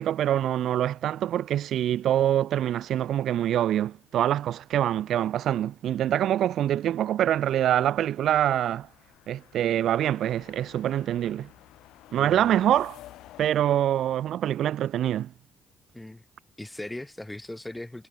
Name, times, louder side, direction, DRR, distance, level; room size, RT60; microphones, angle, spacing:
voice 1, 0.0-8.9 9.3-11.5 12.1-13.0 13.4-15.3, right 11 dB, 75° right, 0.9 m, -25 dB
sound 1, 6.7-13.5, left 14 dB, 90° left, 2.1 m, -52 dB
voice 2, 12.2-12.5 15.9-16.2 16.6-18.1, left 1 dB, 10° left, 1.2 m, -39 dB
cardioid pair, 90°, 0 cm